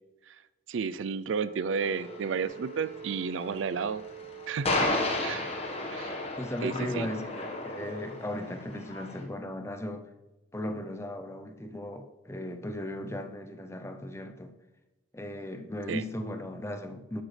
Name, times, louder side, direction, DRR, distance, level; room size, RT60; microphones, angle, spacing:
voice 1, 0.7-4.0 4.5-5.5 5.9-6.1 6.6-7.1 15.9-16.0, right 5 dB, 75° right, 16 dB, 0.4 m, -32 dB
Wind instrument woodwind instrument, 1.4-5.8, right 7 dB, 60° right, 1.7 m, -46 dB
sound 1, 1.8-9.2, left 2 dB, 30° left, 1.3 m, -33 dB
voice 2, 6.1-10.1 10.5-14.5 15.1-17.2, left 1 dB, 15° left, 8 dB, 0.6 m, -37 dB
11.0 x 8.0 x 3.3 m, 1.1 s
head